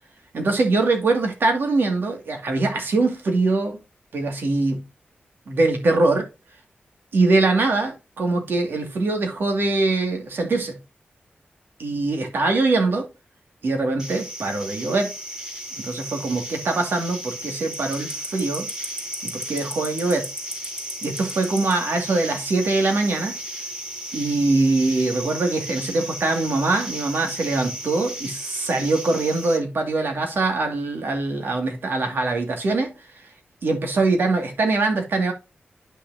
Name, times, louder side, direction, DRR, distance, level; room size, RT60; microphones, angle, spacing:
voice 1, 0.3-3.8 4.1-4.8 5.5-6.3 7.1-10.8 11.8-13.0 13.6-15.1 15.8-18.7 19.2-20.3 21.0-23.4 24.1-32.9 33.6-35.3, right 3 dB, 75° right, 2.3 m, -23 dB
sound 1, 14.0-29.6, equal, 20° right, 2.5 m, -34 dB
9.9 x 5.9 x 2.8 m
wide cardioid pair, 110°, 4 cm